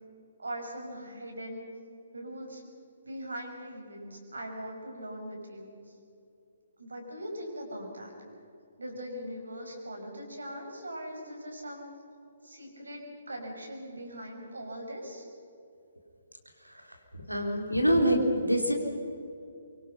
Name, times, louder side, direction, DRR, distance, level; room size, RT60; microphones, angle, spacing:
voice 1, 0.4-1.7 2.1-2.6 3.0-5.8 6.8-8.1 8.8-11.9 12.4-15.2, equal, 70° right, 2 dB, 5.9 m, -40 dB
voice 2, 17.3-18.7, equal, 90° right, 3 dB, 3.8 m, -25 dB
24.5 x 24.0 x 5.8 m, 2.6 s
figure-of-eight pair, 135°, 0 cm